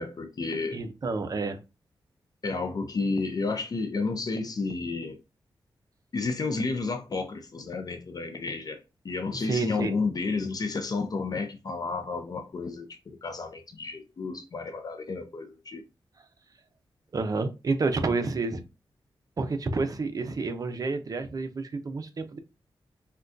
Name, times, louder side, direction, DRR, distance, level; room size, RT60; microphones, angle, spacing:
voice 1, 0.0-0.8 2.4-5.2 6.1-15.8, left 3 dB, 45° left, 0.4 m, -31 dB
voice 2, 0.7-1.6 9.3-9.9 17.1-18.6 19.4-22.4, right 3 dB, 45° right, 0.5 m, -29 dB
3.5 x 2.2 x 2.5 m
cardioid pair, 85°, 9 cm